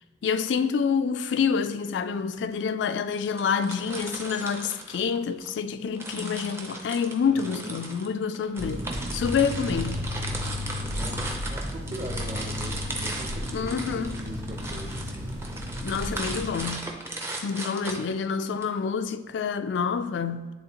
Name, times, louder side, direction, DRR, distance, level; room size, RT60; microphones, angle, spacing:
voice 1, 0.2-8.9 9.1-10.0 13.5-14.2 15.8-16.9 17.4-20.5, left 6 dB, 85° left, 0.3 m, -27 dB
sound 1, 3.3-5.5 6.0-18.6, right 2 dB, 15° right, 0.5 m, -37 dB
voice 2, 7.3-7.7 10.7-15.3, equal, 40° right, 0.9 m, -40 dB
sound 2, 8.6-16.7, left 1 dB, 90° right, 1.9 m, -34 dB
10.5 x 3.5 x 2.9 m
head